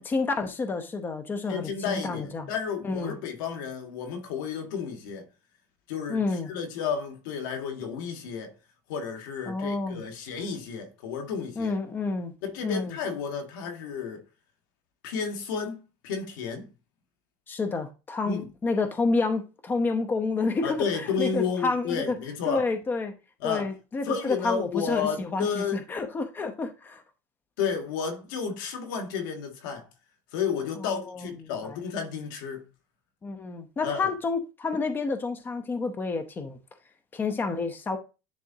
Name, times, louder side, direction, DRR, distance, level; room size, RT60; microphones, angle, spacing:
voice 1, 0.0-2.5 2.8-3.2 6.1-6.5 9.5-10.0 11.6-12.3 12.6-13.0 17.5-20.8 21.0-22.2 22.5-23.1 23.4-25.6 25.9-27.0 30.8-31.3 33.2-36.6 37.1-38.0, left 3 dB, 20° left, 0.8 m, -29 dB
voice 2, 1.5-5.3 5.9-8.5 8.9-11.8 12.4-14.2 15.0-16.7 18.2-18.5 20.6-22.6 23.4-23.7 24.0-25.8 27.6-29.9 30.3-32.6 33.8-34.1, left 6 dB, 85° left, 1.6 m, -32 dB
10.5 x 3.5 x 2.8 m
cardioid pair, 145°, 10 cm